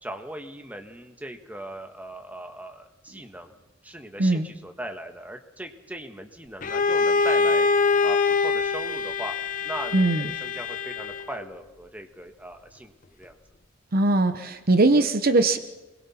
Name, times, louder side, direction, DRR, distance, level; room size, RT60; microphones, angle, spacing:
voice 1, 0.0-3.5 3.8-7.7 8.0-9.3 9.6-13.4, right 1 dB, 10° right, 5 dB, 1.4 m, -39 dB
Bowed string instrument, 6.6-11.4, left 4 dB, 45° left, 0.8 m, -24 dB
voice 2, 9.9-10.3 13.9-15.6, right 2 dB, 50° right, 10 dB, 0.8 m, -20 dB
28.0 x 21.5 x 4.3 m, 1.1 s
head